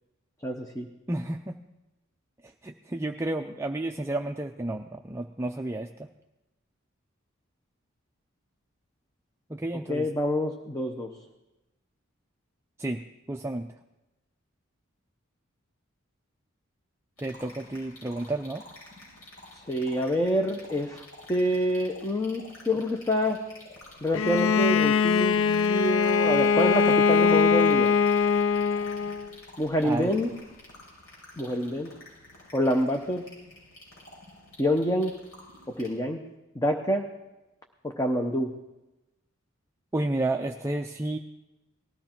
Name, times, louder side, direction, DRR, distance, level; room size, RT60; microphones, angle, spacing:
voice 1, 0.4-0.9 9.9-11.1 19.7-21.0 21.3-23.4 24.0-27.9 29.6-30.3 31.4-31.9 32.5-33.2 34.6-35.1 35.8-36.2 36.5-37.1 38.0-38.5, equal, 15° left, 3 dB, 0.8 m, -27 dB
voice 2, 1.1-1.6 2.4-6.1 9.5-10.1 12.8-13.0 13.3-13.7 17.2-18.6 29.8-30.1 39.9-41.2, right 2 dB, 15° right, 4 dB, 0.5 m, -31 dB
sound 1, 17.2-35.9, left 1 dB, 85° left, 6.4 m, -50 dB
Bowed string instrument, 24.1-29.3, left 5 dB, 70° left, 0.4 m, -22 dB
19.0 x 13.5 x 4.5 m, 1.0 s
head